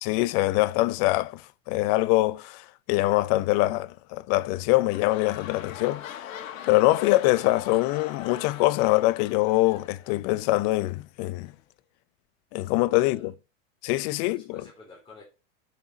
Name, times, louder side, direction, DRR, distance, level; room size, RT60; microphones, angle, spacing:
voice 1, 0.0-1.4 1.7-6.2 6.7-11.5 12.5-13.3 13.8-14.6, left 19 dB, 45° left, 0.7 m, -24 dB
sound 1, 4.4-10.8 11.5-11.6, left 10 dB, 85° left, 1.5 m, -42 dB
voice 2, 12.8-13.2 14.0-15.2, left 3 dB, 10° left, 3.6 m, -51 dB
8.6 x 5.9 x 5.4 m
hypercardioid pair, 120°, 40 cm